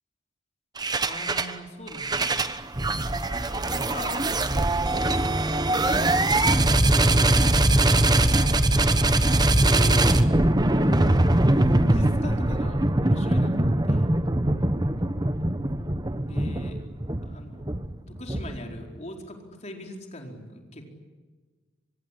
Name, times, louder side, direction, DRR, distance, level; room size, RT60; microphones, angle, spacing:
sound 1, 0.8-1.5 1.9-18.8, right 1 dB, 20° right, 1.1 m, -22 dB
voice 1, 1.1-2.3 3.1-5.2 5.7-6.7 7.0-7.4 9.6-10.2 10.8-11.3 11.8-14.1 16.3-16.8 17.2-17.8 18.1-20.9, equal, 35° left, 2 dB, 4.6 m, -41 dB
24.5 x 24.0 x 9.9 m, 1.4 s
head